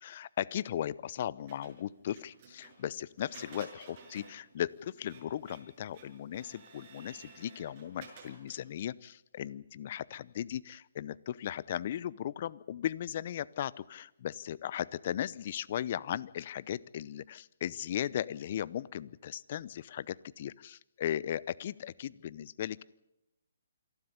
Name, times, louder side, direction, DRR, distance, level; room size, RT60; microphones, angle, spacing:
voice 1, 0.0-22.8, left 10 dB, 45° left, 21 dB, 0.7 m, -37 dB
Printer, 1.5-8.7, right 4 dB, 40° right, 6.7 m, -54 dB
26.5 x 12.0 x 9.8 m, 0.91 s
hypercardioid pair, 145°, 0 cm